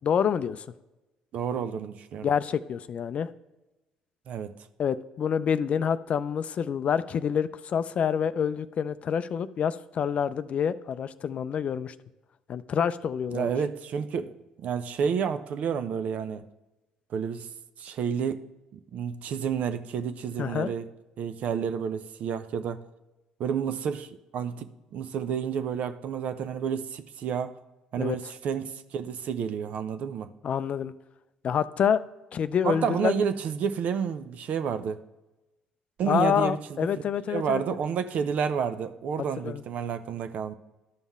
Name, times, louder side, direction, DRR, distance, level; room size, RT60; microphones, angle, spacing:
voice 1, 0.0-0.6 2.2-3.3 4.8-11.9 12.5-13.5 20.4-20.7 28.0-28.2 30.4-30.9 31.4-32.0 32.3-33.1 36.1-37.6 39.4-39.6, left 8 dB, 50° left, 0.4 m, -27 dB
voice 2, 1.3-2.3 4.3-4.5 13.3-16.5 17.1-17.5 17.8-18.4 18.7-20.9 21.2-22.8 23.4-27.5 27.9-30.3 32.6-35.0 36.0-40.5, right 7 dB, 55° right, 0.6 m, -30 dB
12.5 x 5.4 x 3.5 m
hypercardioid pair, 60°, 3 cm